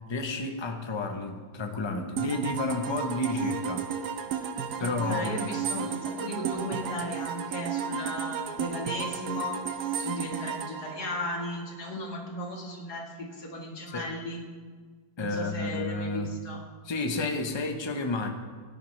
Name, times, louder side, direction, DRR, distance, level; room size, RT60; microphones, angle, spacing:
voice 1, 0.1-3.9 4.8-5.3 13.9-14.1 15.2-16.3 16.8-18.3, left 2 dB, 25° left, 4 dB, 0.6 m, -31 dB
sound 1, 2.2-11.9, right 7 dB, 70° right, 1.2 m, -33 dB
voice 2, 4.8-14.4 15.2-16.6, left 1 dB, 60° left, -1 dB, 2.3 m, -36 dB
16.5 x 11.5 x 3.3 m, 1.5 s
omnidirectional pair, 2.0 m